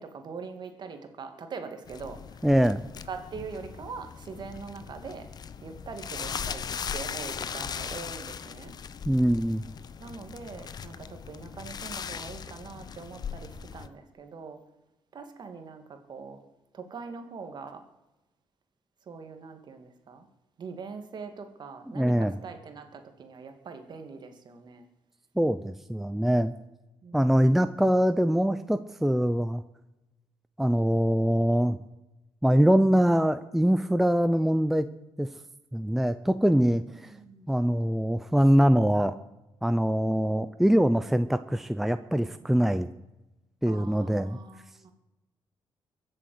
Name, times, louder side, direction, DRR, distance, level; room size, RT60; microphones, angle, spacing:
voice 1, 0.0-2.5 3.1-5.3 5.6-6.7 6.9-8.7 10.0-14.6 15.1-16.4 16.7-17.8 19.1-20.3 20.6-24.8 27.0-27.6 36.8-37.5 43.7-44.9, right 5 dB, 45° right, 7 dB, 2.3 m, -42 dB
sound 1, 1.9-13.9, left 7 dB, 45° left, 0.8 m, -39 dB
voice 2, 2.4-2.8 9.1-9.6 22.0-22.3 25.4-26.5 27.1-29.6 30.6-31.8 32.4-34.9 35.2-35.3 35.7-37.1 37.5-39.2 39.6-42.9 43.6-44.4, equal, 5° right, 11 dB, 0.5 m, -23 dB
23.0 x 7.8 x 7.9 m, 1.0 s
cardioid pair, 135°, 10 cm